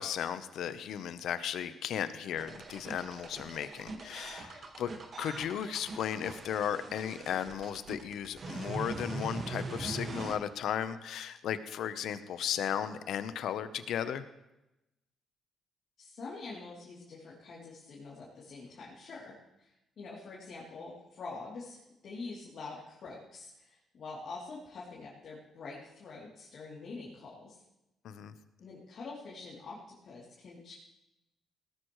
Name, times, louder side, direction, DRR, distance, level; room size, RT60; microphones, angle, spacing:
voice 1, 0.0-4.9 5.2-14.2 28.0-28.3, left 9 dB, 75° left, 12 dB, 0.8 m, -35 dB
sound 1, 2.4-10.4, right 3 dB, 45° right, 1.6 m, -41 dB
voice 2, 16.0-27.6 28.6-30.7, left 3 dB, 60° left, -6 dB, 3.0 m, -46 dB
18.0 x 13.0 x 3.1 m, 0.93 s
cardioid pair, 90°, 0 cm